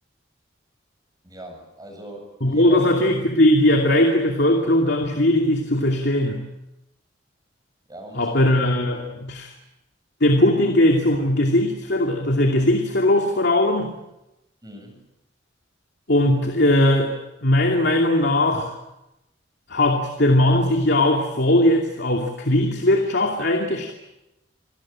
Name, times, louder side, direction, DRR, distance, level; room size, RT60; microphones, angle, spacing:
voice 1, 1.2-2.9 7.9-8.4 14.6-15.0, equal, 20° right, 3 dB, 7.6 m, -39 dB
voice 2, 2.4-6.4 8.1-9.5 10.2-13.9 16.1-18.8 19.7-23.9, left 1 dB, 60° left, 3 dB, 2.7 m, -19 dB
28.0 x 18.0 x 8.8 m, 0.94 s
head